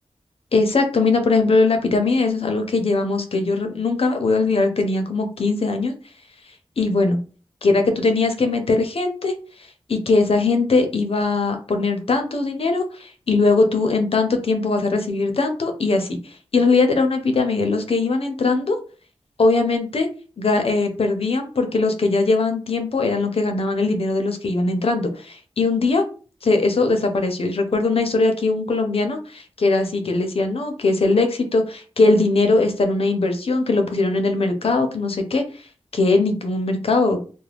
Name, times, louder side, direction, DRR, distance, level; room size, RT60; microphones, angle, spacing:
voice 1, 0.5-5.9 6.8-7.2 7.6-9.3 9.9-18.8 19.4-20.1 20.4-26.0 26.4-35.4 35.9-37.2, left 3 dB, 60° left, 5 dB, 0.6 m, -20 dB
2.4 x 2.1 x 3.3 m, 0.38 s
wide cardioid pair, 95°, 11 cm